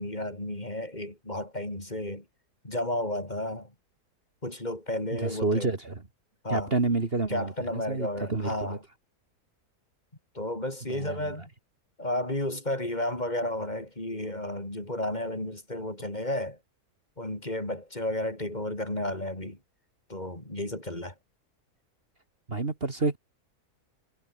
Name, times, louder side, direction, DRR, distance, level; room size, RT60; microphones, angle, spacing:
voice 1, 0.0-2.2 2.6-3.7 4.4-5.7 6.4-6.7 7.3-8.8 10.3-11.5 12.0-16.6 17.2-19.6 20.1-21.1, left 1 dB, 25° left, 4.5 m, -32 dB
voice 2, 5.1-6.0 6.5-8.8 10.9-11.5 22.5-23.2, right 3 dB, 40° right, 2.3 m, -29 dB
omnidirectional pair, 1.6 m